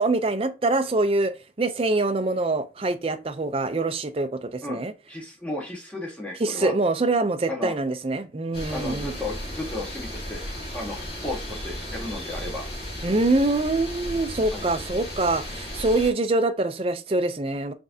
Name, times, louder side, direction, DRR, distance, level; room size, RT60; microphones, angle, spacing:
voice 1, 0.0-4.9 6.4-9.2 13.0-17.7, right 2 dB, 35° right, 0.5 m, -24 dB
voice 2, 5.1-6.7 7.5-7.7 8.7-12.6 14.5-14.6, left 2 dB, 5° left, 1.4 m, -34 dB
sound 1, 8.5-16.1, left 1 dB, 35° left, 1.7 m, -35 dB
5.9 x 3.2 x 2.7 m
head